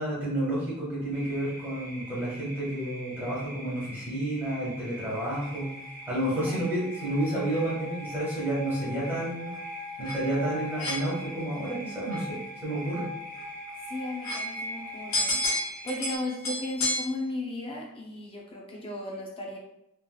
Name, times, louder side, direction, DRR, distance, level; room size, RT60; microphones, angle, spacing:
voice 1, 0.0-5.7 6.1-9.5 10.0-13.1, right 1 dB, 10° right, -8 dB, 1.3 m, -30 dB
sound 1, 1.1-16.2, right 1 dB, 10° left, 1.3 m, -44 dB
sound 2, 5.3-17.1, left 1 dB, 75° left, 0.9 m, -35 dB
voice 2, 13.9-15.5 15.8-19.6, left 2 dB, 25° left, -1 dB, 0.5 m, -35 dB
3.1 x 3.0 x 2.2 m, 0.85 s
head